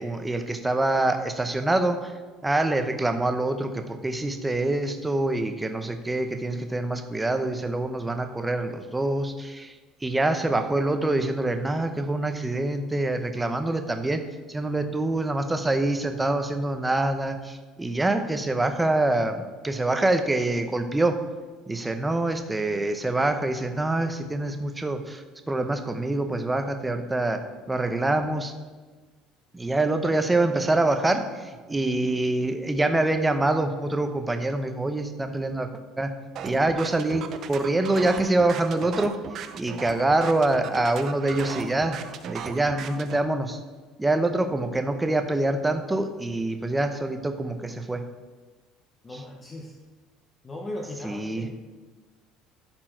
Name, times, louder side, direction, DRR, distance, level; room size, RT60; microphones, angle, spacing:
voice 1, 0.0-2.1 2.4-9.8 10.0-21.2 21.7-28.5 29.5-35.7 36.0-36.1 36.4-43.6 44.0-48.0 51.0-51.5, right 2 dB, 10° right, 7 dB, 0.6 m, -25 dB
sound 1, 36.4-43.2, right 8 dB, 45° right, 0.5 m, -37 dB
voice 2, 49.0-49.8 50.4-51.5, left 1 dB, 20° left, 1 dB, 0.8 m, -37 dB
11.5 x 4.5 x 4.5 m, 1.3 s
cardioid pair, 140°, 0 cm